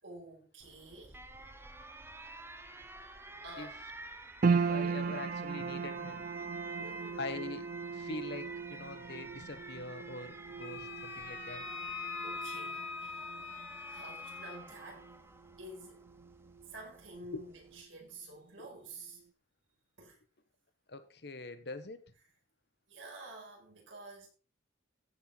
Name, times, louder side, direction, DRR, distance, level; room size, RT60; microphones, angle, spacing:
voice 1, 0.0-1.2 3.4-3.8 6.8-7.2 12.0-13.3 13.9-15.1 15.6-16.0 16.7-19.2 20.0-20.2 22.9-24.3, right 2 dB, 75° right, 5.3 m, -49 dB
Alarm, 0.6-17.8, right 2 dB, 10° right, 0.8 m, -50 dB
sound 1, 4.4-16.8 17.1-18.0 18.5-18.6, right 5 dB, 45° right, 0.4 m, -37 dB
voice 2, 4.5-6.2 6.8-6.9 7.2-11.7 17.3-17.4 18.6-18.7 20.9-22.0, left 2 dB, 55° left, 1.2 m, -44 dB
Wind instrument woodwind instrument, 10.6-14.6, left 5 dB, 80° left, 3.2 m, -42 dB
15.5 x 5.7 x 4.5 m
head